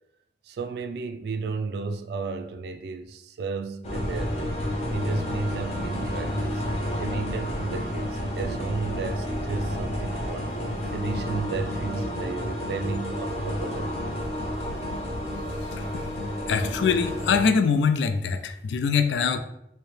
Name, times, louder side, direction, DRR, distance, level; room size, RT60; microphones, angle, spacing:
voice 1, 0.4-4.6 4.9-6.6 7.0-10.6 10.9-14.3, right 4 dB, 65° right, 0.3 m, -33 dB
sound 1, 3.8-17.5, equal, 35° left, 0.7 m, -30 dB
voice 2, 15.6-16.1 16.5-19.4, left 5 dB, 85° left, 0.3 m, -24 dB
4.5 x 2.1 x 3.2 m
head